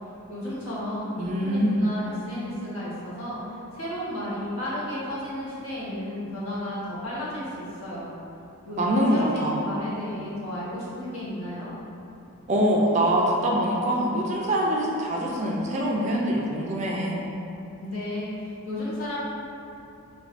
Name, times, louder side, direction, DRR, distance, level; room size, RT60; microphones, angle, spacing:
voice 1, 0.3-8.1 8.6-11.7 17.8-19.2, left 1 dB, 75° left, -8 dB, 1.0 m, -33 dB
voice 2, 1.2-1.8 8.8-9.6 12.5-17.2, equal, 30° right, -3 dB, 0.3 m, -24 dB
4.4 x 2.3 x 2.4 m, 2.9 s
head